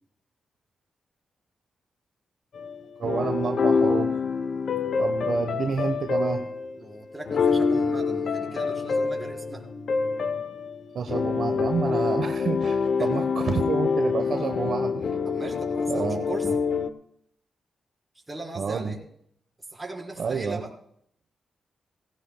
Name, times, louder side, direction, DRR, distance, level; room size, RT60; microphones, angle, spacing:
sound 1, 2.5-16.9, left 5 dB, 65° left, 0.8 m, -26 dB
voice 1, 3.0-4.1 5.0-6.4 10.9-15.0 15.9-16.5 18.5-19.0 20.2-20.6, right 5 dB, 65° right, 6 dB, 1.0 m, -29 dB
voice 2, 6.8-9.7 13.0-13.1 13.5-13.6 15.2-16.5 18.3-19.0 19.7-20.7, right 2 dB, 20° right, -1 dB, 4.4 m, -38 dB
18.0 x 16.0 x 2.3 m, 0.69 s
cardioid pair, 75°, 0 cm